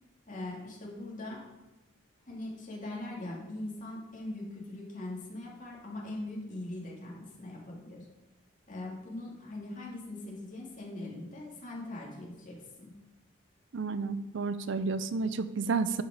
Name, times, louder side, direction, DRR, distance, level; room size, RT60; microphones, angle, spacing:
voice 1, 0.3-1.4 2.3-8.1 8.7-12.9, left 1 dB, 40° left, -3 dB, 2.4 m, -41 dB
voice 2, 13.7-16.0, right 4 dB, 65° right, 12 dB, 0.5 m, -31 dB
12.0 x 5.1 x 5.0 m, 1.0 s
head